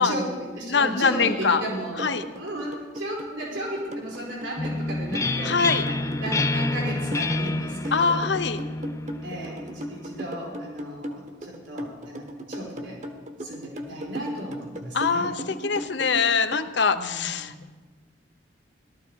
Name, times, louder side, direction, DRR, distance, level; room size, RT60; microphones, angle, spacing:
voice 1, 0.0-5.6 5.9-8.2 9.2-13.0 13.4-15.3 16.9-17.6, right 1 dB, 90° right, -3 dB, 4.7 m, -34 dB
voice 2, 0.7-1.6 2.0-2.2 5.4-5.8 7.9-8.6 14.9-17.5, left 5 dB, 70° left, 10 dB, 0.8 m, -23 dB
sound 1, 1.3-16.7, right 1 dB, 40° right, 1.3 m, -36 dB
sound 2, 4.6-10.2, left 2 dB, 15° left, 0.4 m, -28 dB
18.0 x 13.0 x 4.8 m, 1.4 s
head